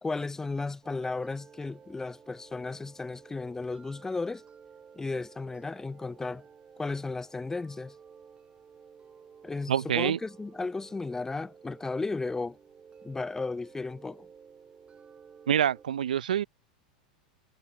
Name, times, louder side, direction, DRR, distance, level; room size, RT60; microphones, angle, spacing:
voice 1, 0.0-4.4 4.9-6.4 6.8-8.0 9.4-12.6 13.0-14.3, left 3 dB, 10° left, 0.5 m, -34 dB
sound 1, 0.8-15.9, right 6 dB, 25° right, 3.9 m, -54 dB
voice 2, 9.7-10.2 15.5-16.4, right 9 dB, 80° right, 0.5 m, -26 dB
hypercardioid pair, 95°, 4 cm